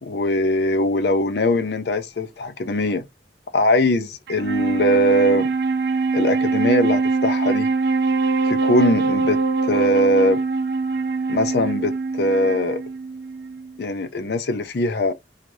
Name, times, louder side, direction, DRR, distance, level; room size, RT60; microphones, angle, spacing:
voice 1, 0.0-3.0 3.5-5.5 6.1-7.7 8.4-10.4 11.3-12.8 13.8-15.1, left 1 dB, 65° left, 0.5 m, -21 dB
Wind instrument woodwind instrument, 4.3-13.8, right 4 dB, 65° right, 0.4 m, -23 dB
2.7 x 2.4 x 3.1 m
head